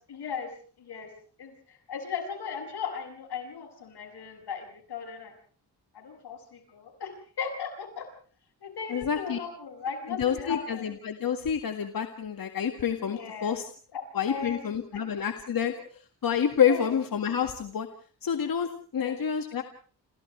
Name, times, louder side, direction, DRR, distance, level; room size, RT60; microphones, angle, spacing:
voice 1, 0.1-0.5 0.8-1.1 1.4-5.3 5.9-8.1 8.6-10.9 13.1-13.6 13.9-14.0 14.3-14.6 16.7-16.9 18.9-19.2, left 6 dB, 90° left, 4 dB, 6.9 m, -37 dB
voice 2, 8.9-9.4 10.1-13.6 14.1-15.7 16.2-17.9 18.2-19.6, left 8 dB, 60° left, 6 dB, 2.0 m, -28 dB
29.0 x 28.5 x 3.3 m, 0.42 s
cardioid pair, 100°, 39 cm